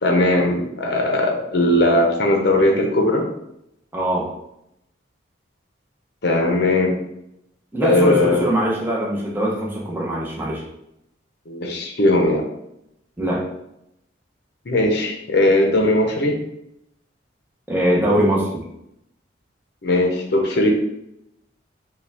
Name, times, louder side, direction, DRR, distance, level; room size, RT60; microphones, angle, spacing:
voice 1, 0.0-3.3 6.2-7.0 7.8-8.5 11.5-12.4 14.7-16.3 19.8-20.7, left 1 dB, 55° left, 2 dB, 0.7 m, -18 dB
voice 2, 3.9-4.3 7.7-10.6 13.2-13.4 17.7-18.6, right 1 dB, 10° right, -4 dB, 0.8 m, -21 dB
5.0 x 2.3 x 3.4 m, 0.80 s
head